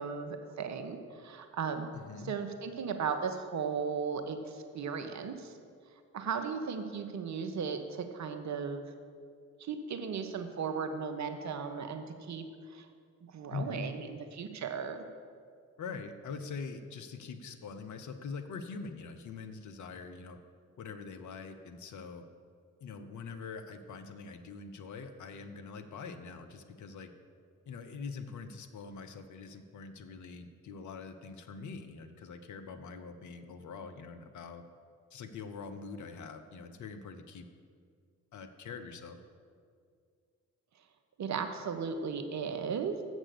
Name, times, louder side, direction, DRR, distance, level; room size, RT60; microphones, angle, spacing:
voice 1, 0.0-1.9 2.2-5.5 6.1-8.8 9.6-12.4 12.7-12.9 13.2-15.0 41.2-43.0, right 6 dB, 40° right, 7 dB, 0.8 m, -36 dB
voice 2, 1.9-2.3 13.5-13.9 15.8-20.4 20.8-22.2 22.8-27.1 27.7-34.6 35.1-37.4 38.3-39.2, left 5 dB, 45° left, 7 dB, 0.7 m, -43 dB
7.4 x 6.1 x 6.7 m, 2.2 s
figure-of-eight pair, 40°, 43 cm